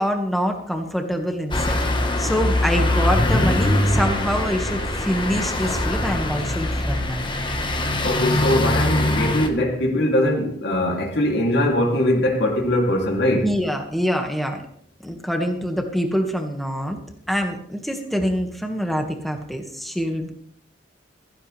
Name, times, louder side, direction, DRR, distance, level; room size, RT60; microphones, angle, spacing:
voice 1, 0.0-1.7 2.2-7.3 13.4-14.6 15.0-17.0 17.3-20.3, equal, ahead, 3 dB, 1.8 m, -25 dB
sound 1, 1.5-9.5, left 1 dB, 25° left, 1.4 m, -22 dB
voice 2, 8.0-13.5, left 1 dB, 60° left, 0 dB, 3.0 m, -21 dB
16.0 x 15.0 x 3.4 m, 0.64 s
head